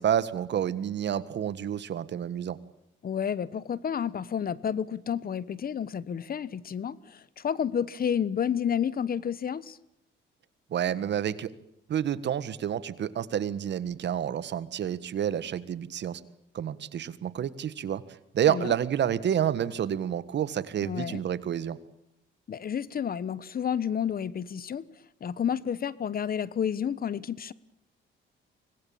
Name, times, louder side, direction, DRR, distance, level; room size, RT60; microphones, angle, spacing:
voice 1, 0.0-2.6 10.7-11.5 11.9-16.2 16.5-18.0 18.3-21.8, right 9 dB, 60° right, 16 dB, 1.6 m, -29 dB
voice 2, 3.0-9.8 18.5-18.7 20.8-21.2 22.5-24.8 25.2-27.5, left 8 dB, 45° left, 19 dB, 1.2 m, -30 dB
25.0 x 20.0 x 8.8 m, 0.77 s
cardioid pair, 90°, 20 cm